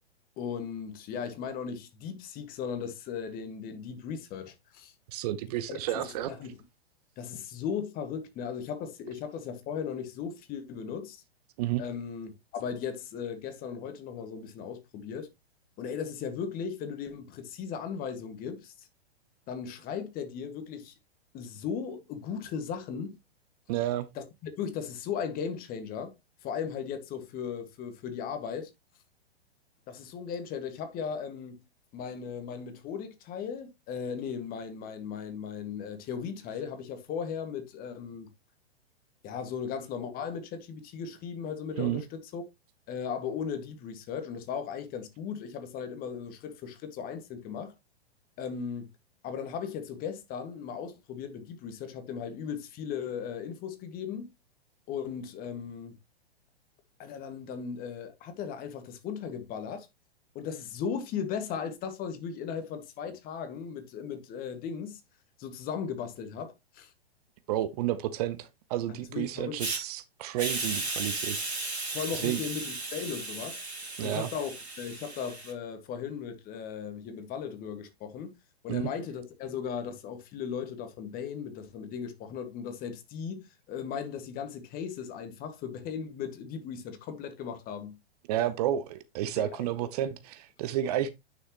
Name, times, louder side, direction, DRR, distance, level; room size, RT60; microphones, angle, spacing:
voice 1, 0.4-4.9 5.7-6.5 7.2-11.2 11.8-15.3 15.8-18.9 19.5-20.9 21.3-23.2 24.1-26.1 26.4-28.7 29.9-31.6 31.9-38.3 39.2-42.4 42.9-47.7 48.4-48.9 49.2-54.3 54.9-56.0 57.0-59.9 60.3-65.0 65.4-66.9 68.9-69.6 71.9-73.6 74.0-74.5 74.8-78.3 78.6-88.0 89.3-89.9, left 7 dB, 30° left, 1.7 m, -37 dB
voice 2, 5.1-6.3 11.6-11.8 23.7-24.1 41.8-42.0 67.5-71.4 72.2-72.4 74.0-74.3 78.7-78.9 88.3-91.1, right 12 dB, 40° right, 0.8 m, -31 dB
Hiss, 69.6-69.8 70.4-75.5, right 3 dB, 85° right, 2.9 m, -35 dB
9.6 x 6.4 x 2.9 m
figure-of-eight pair, 110°, 32 cm